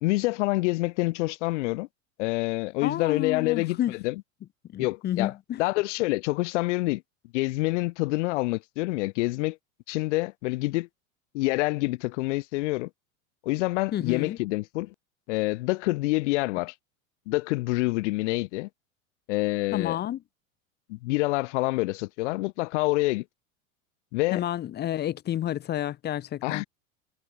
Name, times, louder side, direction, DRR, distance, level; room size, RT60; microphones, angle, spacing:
voice 1, 0.0-1.9 2.2-4.2 4.8-7.0 7.3-9.6 9.9-10.9 11.3-12.9 13.4-14.9 15.3-16.7 17.3-18.7 19.3-20.0 20.9-23.2 24.1-24.4 26.4-26.7, left 22 dB, 60° left, 1.1 m, -27 dB
voice 2, 2.8-4.0 4.7-5.6 13.9-14.4 19.7-20.2 24.3-26.6, left 12 dB, 25° left, 0.8 m, -30 dB
hypercardioid pair, 90°, 41 cm